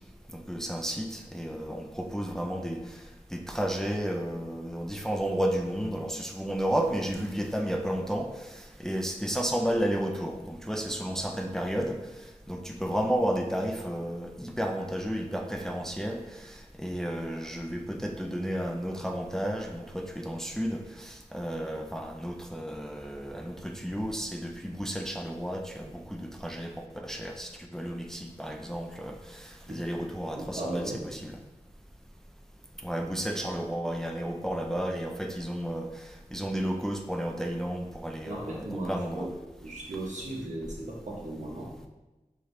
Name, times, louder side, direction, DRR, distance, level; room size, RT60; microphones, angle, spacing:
voice 1, 0.3-3.0 3.3-12.0 12.5-31.3 32.8-35.9 36.3-39.3, equal, 5° left, 3 dB, 0.4 m, -32 dB
voice 2, 30.3-31.1 38.3-39.3 39.6-41.7, right 1 dB, 75° right, -3 dB, 1.0 m, -36 dB
4.8 x 2.7 x 3.2 m, 1.1 s
wide cardioid pair, 50°, 13 cm